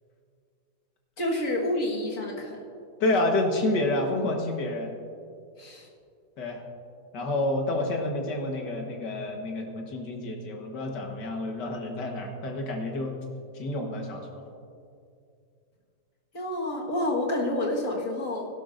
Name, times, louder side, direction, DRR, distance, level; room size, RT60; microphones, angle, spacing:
voice 1, 1.2-2.6 5.6-5.9 16.3-18.5, left 1 dB, 50° left, -2 dB, 2.0 m, -29 dB
voice 2, 3.0-4.9 6.4-6.6 7.1-13.2 13.5-14.4, left 2 dB, 85° left, 2 dB, 2.0 m, -29 dB
17.0 x 11.5 x 2.6 m, 2.4 s
omnidirectional pair, 1.8 m